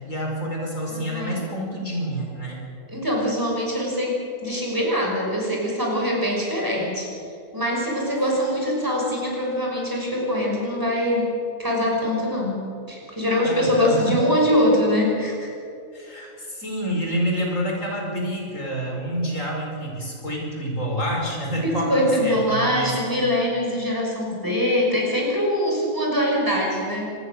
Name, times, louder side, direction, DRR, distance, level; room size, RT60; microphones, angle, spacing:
voice 1, 0.0-2.6 13.4-14.2 15.9-22.9, equal, 70° left, -1 dB, 5.6 m, -28 dB
voice 2, 0.9-1.4 2.9-7.1 7.5-11.3 11.6-12.6 12.9-15.5 21.6-27.1, left 1 dB, 15° right, -2 dB, 5.9 m, -23 dB
25.5 x 20.0 x 6.7 m, 2.5 s
omnidirectional pair, 1.4 m